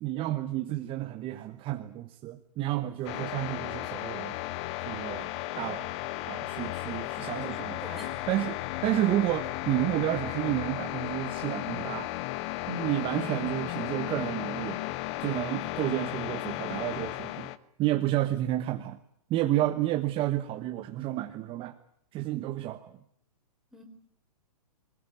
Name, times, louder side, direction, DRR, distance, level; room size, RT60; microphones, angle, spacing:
voice 1, 0.0-4.4 4.8-5.3 5.5-5.9 6.3-7.8 8.3-12.1 12.7-14.8 15.2-17.5 17.8-19.0 19.3-21.7 22.1-22.9, right 14 dB, 25° right, 8 dB, 1.2 m, -30 dB
sound 1, 3.1-17.6, left 17 dB, 45° left, 1.2 m, -35 dB
voice 2, 7.4-8.2 19.5-19.7 23.7-23.8, right 1 dB, ahead, 2 dB, 4.4 m, -45 dB
22.5 x 20.5 x 9.3 m, 0.69 s
hypercardioid pair, 130°, 20 cm